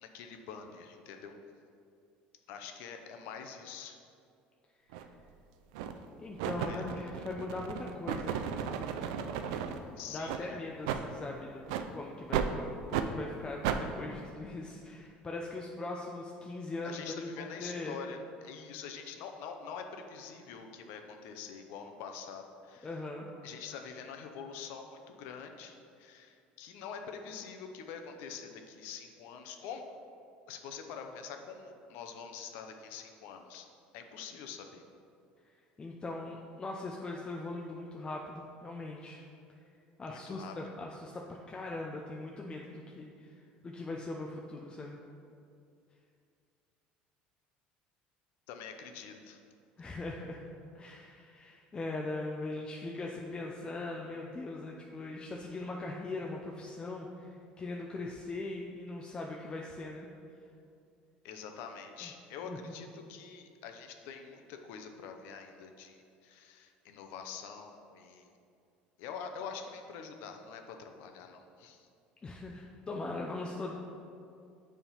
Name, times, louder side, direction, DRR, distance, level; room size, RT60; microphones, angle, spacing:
voice 1, 0.0-1.3 2.5-4.0 6.6-6.8 10.0-10.7 16.8-22.9 23.4-29.8 30.5-33.7 33.9-34.8 40.0-40.5 48.5-49.4 61.2-68.3 69.0-71.9, left 6 dB, 75° left, 5 dB, 0.6 m, -45 dB
sound 1, 4.9-5.1 5.7-6.0 6.4-9.8 10.2-10.4 10.8-11.0 11.7-11.9 12.3-12.5 12.9-13.1 13.6-13.8, right 8 dB, 85° right, 0.4 m, -34 dB
voice 2, 6.2-8.4 10.1-18.0 22.8-23.3 35.8-39.2 40.0-45.0 49.8-50.4 50.7-60.1 62.0-62.1 62.4-62.7 72.2-73.8, left 2 dB, 25° left, -1 dB, 0.6 m, -40 dB
7.0 x 3.5 x 5.6 m, 2.4 s
supercardioid pair, 100°, 4 cm